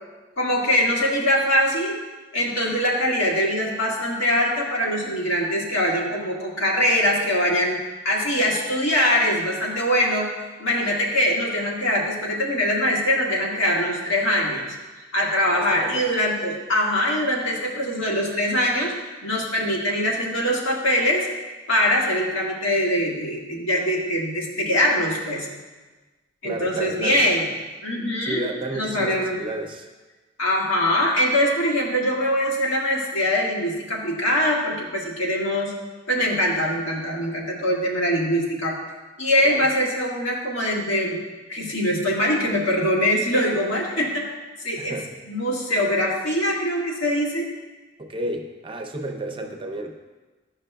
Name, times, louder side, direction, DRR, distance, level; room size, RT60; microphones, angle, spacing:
voice 1, 0.4-1.9 2.3-7.8 8.0-10.3 10.6-14.7 15.1-18.9 19.2-21.3 21.7-25.5 26.4-27.5 27.8-29.4 30.4-35.7 36.1-38.8 39.2-41.2 41.5-44.3 44.6-45.0 45.3-47.5, equal, 85° left, -4 dB, 1.7 m, -23 dB
voice 2, 15.5-16.0 26.4-27.3 28.2-29.9 39.4-39.7 44.8-45.1 48.0-50.0, right 1 dB, 25° right, 4 dB, 0.6 m, -32 dB
12.0 x 5.7 x 2.2 m, 1.2 s
head